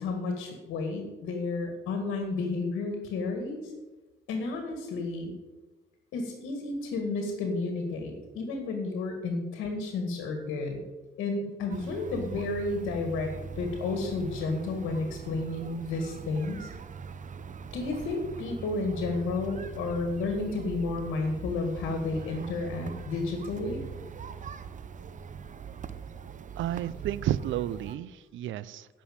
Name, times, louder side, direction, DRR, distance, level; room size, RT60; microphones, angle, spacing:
voice 1, 0.0-3.6 4.3-5.3 6.1-10.8 11.2-13.3 13.6-16.7 17.7-23.8, left 3 dB, 85° left, 4 dB, 2.0 m, -31 dB
sound 1, 11.7-28.0, right 6 dB, 40° right, 0.8 m, -42 dB
voice 2, 26.6-28.9, right 12 dB, 75° right, 18 dB, 0.6 m, -31 dB
10.5 x 6.3 x 8.7 m, 1.2 s
cardioid pair, 90°, 20 cm